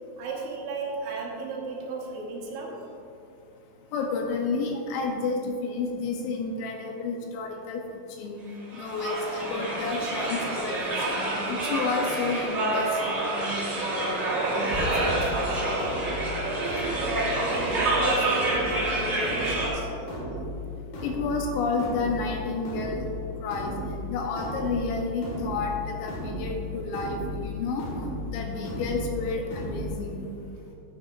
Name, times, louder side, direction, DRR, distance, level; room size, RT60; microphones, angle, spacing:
voice 1, 0.2-2.9 14.3-16.0 16.5-19.9, right 3 dB, 75° right, -2 dB, 3.5 m, -34 dB
voice 2, 3.9-7.8 8.2-8.4 8.7-13.1 21.0-23.1 23.4-23.7 24.1-27.8 28.3-30.3, left 4 dB, 80° left, 1 dB, 2.7 m, -30 dB
sound 1, 8.7-19.7, right 1 dB, 45° right, 1.7 m, -28 dB
sound 2, 14.9-29.9, left 1 dB, 60° left, 3.2 m, -35 dB
12.5 x 10.0 x 2.5 m, 2.7 s
omnidirectional pair, 5.6 m